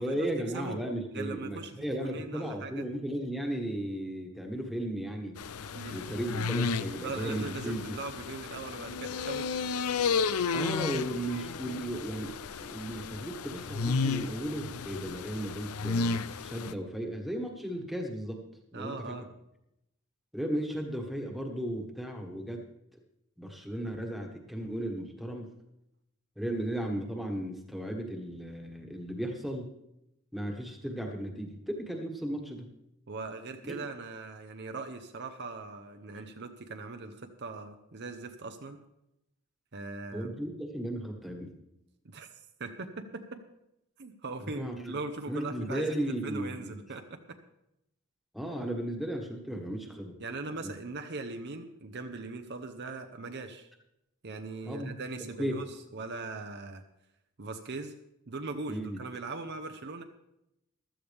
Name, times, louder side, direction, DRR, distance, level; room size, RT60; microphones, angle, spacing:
voice 1, 0.0-5.4 5.9-7.9 10.5-16.2 16.4-18.4 18.7-18.9 20.3-22.6 23.4-25.5 26.4-29.7 30.3-32.7 33.6-33.8 40.1-41.5 44.4-45.0 45.3-46.7 48.3-50.1 50.5-50.7 54.6-54.9 55.4-55.6 58.7-59.0, right 1 dB, ahead, 2 dB, 1.5 m, -35 dB
voice 2, 1.1-2.9 5.7-6.2 7.0-9.7 18.7-19.3 33.1-38.8 39.7-40.3 42.0-43.4 44.0-47.4 50.2-53.7 54.2-56.8 57.4-57.9 58.3-60.0, right 3 dB, 50° right, 6 dB, 0.8 m, -40 dB
sound 1, 5.4-16.7, left 5 dB, 80° left, 0.5 m, -33 dB
15.0 x 12.5 x 3.5 m, 0.84 s
head